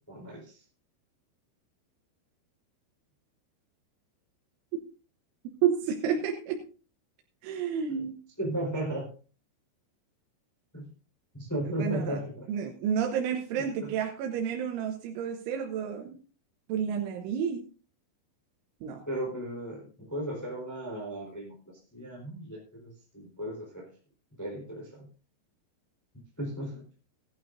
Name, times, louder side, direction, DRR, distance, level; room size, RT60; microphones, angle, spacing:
voice 1, 0.1-0.6 7.9-8.0 8.4-9.1 10.7-10.9 11.3-12.5 13.8-13.9 19.1-21.5 21.9-23.9 24.4-25.1 26.4-26.8, right 1 dB, 5° left, -2 dB, 3.4 m, -35 dB
voice 2, 5.6-6.6 7.4-8.2 11.7-12.2 12.5-16.2 16.7-17.6 18.8-19.0, right 8 dB, 85° right, 2 dB, 3.5 m, -30 dB
18.0 x 11.5 x 2.6 m, 0.37 s
omnidirectional pair, 5.4 m